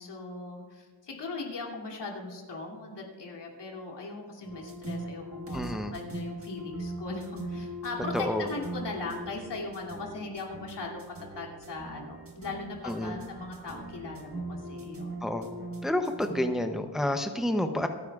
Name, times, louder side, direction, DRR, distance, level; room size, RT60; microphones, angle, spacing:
voice 1, 0.0-11.0 11.3-15.2, left 3 dB, 90° left, -1 dB, 2.8 m, -39 dB
sound 1, 4.4-16.5, right 2 dB, 35° right, 1.5 m, -40 dB
voice 2, 5.5-5.9 8.1-8.5 12.8-13.2 15.2-15.5 15.8-17.9, left 1 dB, ahead, 6 dB, 0.6 m, -29 dB
28.0 x 9.7 x 2.4 m, 1.5 s
wide cardioid pair, 150°, 41 cm